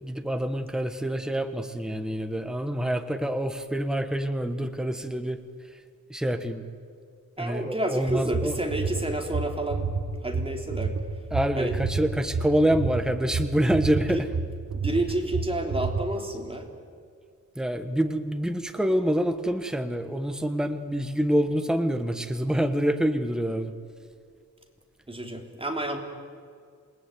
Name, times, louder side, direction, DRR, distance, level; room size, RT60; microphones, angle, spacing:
voice 1, 0.0-5.4 5.7-5.8 6.1-6.6 7.4-8.6 11.3-14.3 17.5-23.7, right 1 dB, ahead, 8 dB, 1.4 m, -26 dB
voice 2, 7.4-9.9 10.2-10.9 11.5-11.8 14.1-14.2 14.7-16.7 25.1-26.0, right 1 dB, 15° right, 2 dB, 3.3 m, -30 dB
sound 1, 8.1-16.0, right 4 dB, 50° right, 1.7 m, -30 dB
28.0 x 19.5 x 9.5 m, 2.2 s
wide cardioid pair, 140°, 32 cm